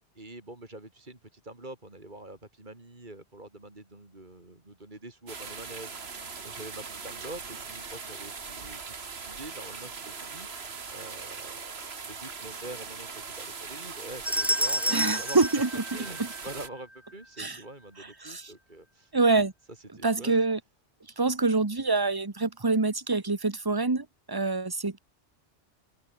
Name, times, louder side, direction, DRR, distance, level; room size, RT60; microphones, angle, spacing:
voice 1, 0.1-15.6 15.9-19.1 19.7-20.4, right 2 dB, 45° right, 4.1 m, -45 dB
sound 1, 5.3-16.7, right 5 dB, 65° right, 2.0 m, -40 dB
sound 2, 14.3-16.7, equal, ahead, 1.5 m, -29 dB
voice 2, 14.9-15.7 16.2-16.3 17.4-17.6 18.2-18.4 19.1-19.5 20.0-20.6 21.2-25.0, right 3 dB, 20° right, 1.3 m, -25 dB
open air
omnidirectional pair, 1.1 m